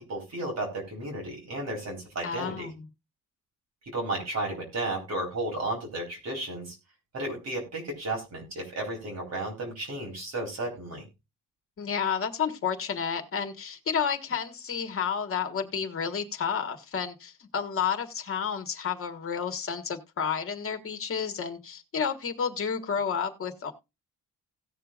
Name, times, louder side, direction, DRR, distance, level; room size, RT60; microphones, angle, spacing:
voice 1, 0.0-2.7 3.8-6.8 7.1-11.0, right 2 dB, 50° right, 0 dB, 4.0 m, -33 dB
voice 2, 2.2-2.7 11.8-23.7, left 7 dB, 40° left, 6 dB, 1.6 m, -31 dB
17.5 x 6.7 x 2.4 m, 0.25 s
wide cardioid pair, 165°, 33 cm